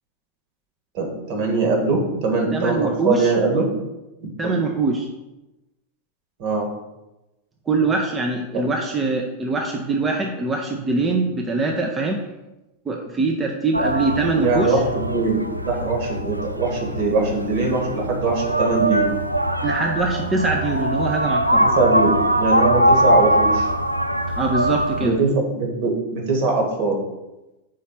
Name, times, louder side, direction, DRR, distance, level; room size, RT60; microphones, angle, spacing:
voice 1, 0.9-3.7 4.2-4.6 6.4-6.7 14.4-19.1 21.6-23.7 25.0-27.0, right 3 dB, 45° right, 0 dB, 1.8 m, -22 dB
voice 2, 2.5-3.6 4.4-5.1 7.7-12.2 12.9-14.8 19.6-21.7 24.4-25.1, right 3 dB, 20° right, 1 dB, 0.7 m, -23 dB
sound 1, 13.7-25.1, right 1 dB, 90° right, 0.4 m, -22 dB
5.1 x 4.1 x 5.8 m, 1.0 s
figure-of-eight pair, 90°, 0 cm